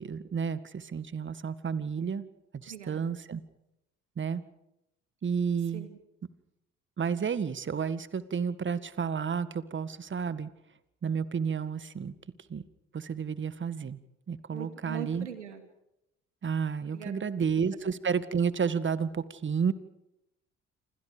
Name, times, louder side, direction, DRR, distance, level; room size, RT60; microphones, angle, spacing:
voice 1, 0.0-2.3 2.5-3.4 4.2-4.4 5.2-5.9 7.0-10.5 11.0-12.1 12.5-12.6 12.9-14.0 14.3-15.3 16.4-19.7, right 6 dB, 35° right, 15 dB, 1.9 m, -31 dB
voice 2, 2.7-3.0 5.7-6.0 14.5-15.6 16.8-17.4, right 9 dB, 90° right, 8 dB, 2.7 m, -42 dB
28.0 x 26.5 x 5.2 m, 0.85 s
hypercardioid pair, 55°, 34 cm